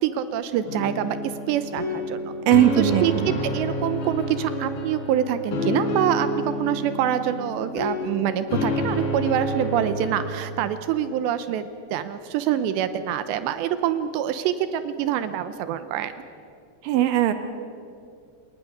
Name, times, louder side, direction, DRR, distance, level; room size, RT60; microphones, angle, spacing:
voice 1, 0.0-2.3 2.8-16.1, right 10 dB, 85° right, 11 dB, 3.0 m, -26 dB
sound 1, 0.7-10.3, left 1 dB, 90° left, 5.4 m, -29 dB
voice 2, 2.5-3.4 16.8-17.3, right 12 dB, 65° right, 9 dB, 2.4 m, -19 dB
29.5 x 19.0 x 6.8 m, 2.4 s
omnidirectional pair, 5.1 m